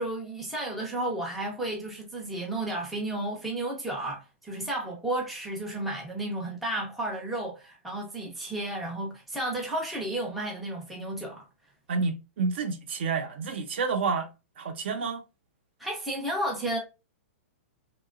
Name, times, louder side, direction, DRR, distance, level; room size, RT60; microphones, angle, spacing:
voice 1, 0.0-11.4 15.8-16.8, right 1 dB, ahead, 0.4 m, -32 dB
voice 2, 11.9-14.3 14.6-15.2, right 4 dB, 55° right, 0.6 m, -29 dB
2.8 x 2.2 x 2.3 m
hypercardioid pair, 175°, 7 cm